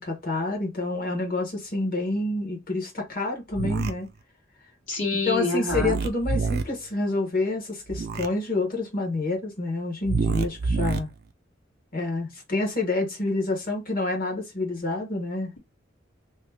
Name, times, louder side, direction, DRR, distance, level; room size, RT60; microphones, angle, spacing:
voice 1, 0.0-4.1 5.3-11.1 11.9-15.5, left 2 dB, 45° left, 1.3 m, -28 dB
sound 1, 3.5-3.9 5.7-6.6 7.9-8.3 10.1-11.0, right 4 dB, 55° right, 0.4 m, -26 dB
voice 2, 4.9-6.0, left 3 dB, 65° left, 1.6 m, -27 dB
3.0 x 2.2 x 3.4 m
head